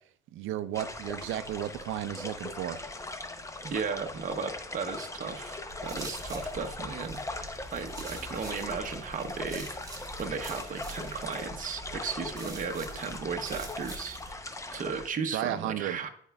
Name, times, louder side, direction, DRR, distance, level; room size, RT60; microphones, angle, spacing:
voice 1, 0.3-2.8 15.3-16.0, right 12 dB, 85° right, 13 dB, 0.5 m, -33 dB
sound 1, 0.7-15.1, left 2 dB, 15° left, 0.7 m, -40 dB
voice 2, 3.6-9.7 10.2-16.1, right 5 dB, 40° right, 5 dB, 0.8 m, -36 dB
sound 2, 5.7-14.3, right 1 dB, 20° right, 1.3 m, -44 dB
10.5 x 4.5 x 2.3 m, 0.64 s
cardioid pair, 90°, 20 cm